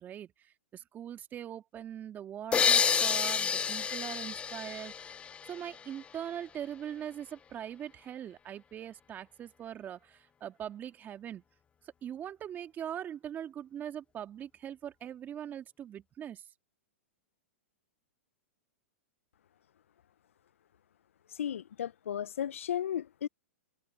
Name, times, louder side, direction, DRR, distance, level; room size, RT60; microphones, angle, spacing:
voice 1, 0.0-5.2 5.5-11.4 11.8-16.4, right 10 dB, 25° right, 2.2 m, -42 dB
sound 1, 2.5-6.1, left 7 dB, 15° left, 0.5 m, -29 dB
voice 2, 21.4-23.3, left 10 dB, 80° left, 0.6 m, -34 dB
hypercardioid pair, 120°, 7 cm